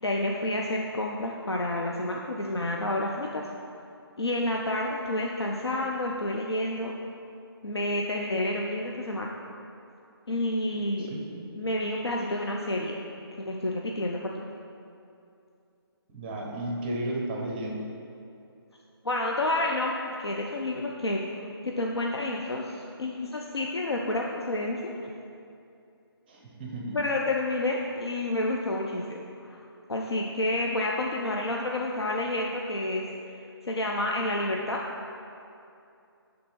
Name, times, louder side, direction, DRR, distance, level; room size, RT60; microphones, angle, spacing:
voice 1, 0.0-3.5 4.2-6.9 7.6-9.3 10.3-11.1 11.6-13.0 13.4-14.4 19.0-21.3 21.6-24.8 26.9-29.6 29.9-33.0 33.6-34.8, left 1 dB, 80° left, -1 dB, 0.5 m, -29 dB
voice 2, 11.0-11.5 16.1-17.8 26.3-27.0, right 1 dB, 25° right, -2 dB, 0.7 m, -34 dB
9.7 x 3.5 x 3.2 m, 2.6 s
figure-of-eight pair, 145°, 13 cm